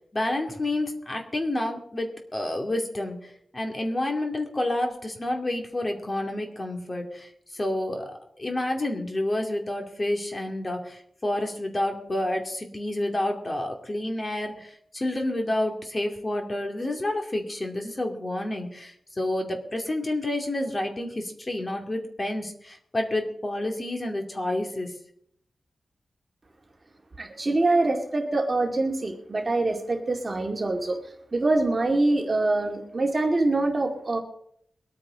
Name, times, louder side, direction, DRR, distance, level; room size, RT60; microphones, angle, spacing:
voice 1, 0.0-24.9, left 1 dB, 25° left, 3 dB, 2.5 m, -29 dB
voice 2, 27.2-31.0 31.3-34.2, right 2 dB, 30° right, 2 dB, 2.2 m, -24 dB
22.5 x 9.3 x 3.9 m, 0.68 s
wide cardioid pair, 130°, 0 cm